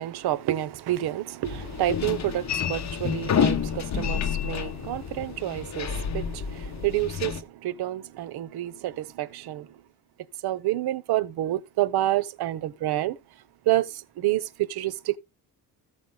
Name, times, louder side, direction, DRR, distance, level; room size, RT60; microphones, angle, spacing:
voice 1, 0.0-9.7 10.4-13.2 13.7-15.2, right 14 dB, 90° right, 0.8 m, -28 dB
sound 1, 1.4-7.4, left 8 dB, 45° left, 1.1 m, -29 dB
14.5 x 5.6 x 3.7 m
cardioid pair, 125°, 37 cm